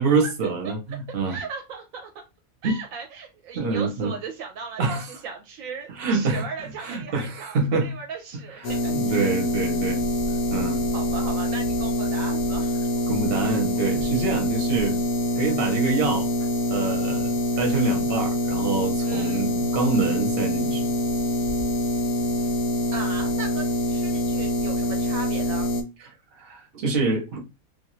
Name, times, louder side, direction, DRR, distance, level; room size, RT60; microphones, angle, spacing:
voice 1, 0.0-1.4 3.5-4.1 4.8-5.1 5.9-6.5 6.8-7.9 8.5-10.0 10.5-10.8 13.1-15.0 15.4-16.3 16.7-17.3 17.6-20.9 26.0-27.4, right 4 dB, 50° right, 0.9 m, -26 dB
voice 2, 1.3-2.1 2.6-9.3 10.9-13.0 19.0-19.5 22.9-25.7, right 5 dB, 75° right, 1.0 m, -37 dB
sound 1, 8.6-25.8, left 1 dB, 65° left, 0.8 m, -25 dB
2.5 x 2.3 x 3.0 m
omnidirectional pair, 1.5 m